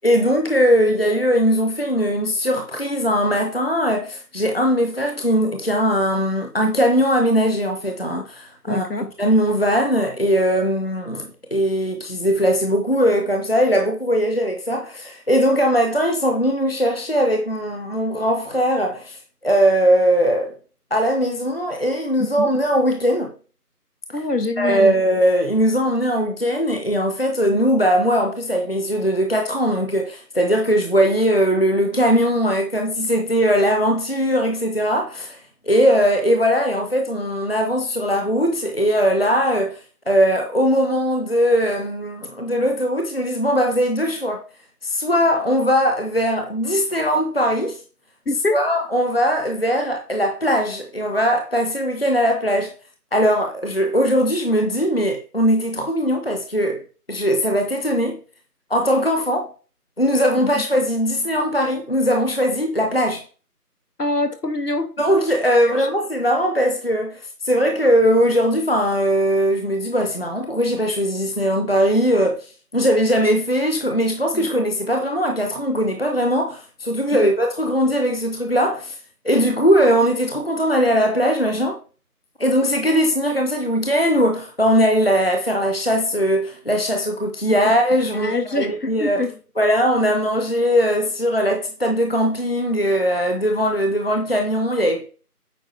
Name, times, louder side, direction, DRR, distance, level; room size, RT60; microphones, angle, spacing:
voice 1, 0.0-8.8 9.2-20.5 20.9-23.3 24.6-35.4 35.6-39.8 40.1-44.4 44.8-47.8 48.5-52.7 53.1-56.8 57.1-58.2 58.7-59.5 60.0-63.2 65.0-72.5 72.7-79.0 79.2-81.8 82.4-89.2 89.6-95.1, equal, 40° left, 0.8 m, -20 dB
voice 2, 8.7-9.1 22.2-22.5 24.1-25.0 48.2-48.6 60.6-60.7 64.0-64.9 65.8-65.9 74.3-74.5 77.1-77.3 88.1-89.4, left 2 dB, 75° left, 1.5 m, -25 dB
8.8 x 4.7 x 3.2 m
figure-of-eight pair, 175°, 47 cm